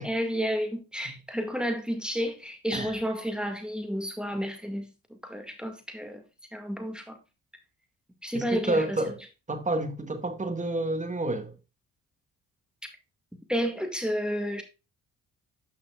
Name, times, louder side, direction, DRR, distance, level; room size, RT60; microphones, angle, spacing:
voice 1, 0.0-6.2 6.5-7.2 8.2-9.0 13.5-14.6, equal, ahead, 1.9 m, -31 dB
voice 2, 8.3-9.2 9.5-11.5, right 2 dB, 20° right, 1.6 m, -29 dB
10.0 x 5.7 x 2.4 m
cardioid pair, 80°, 35 cm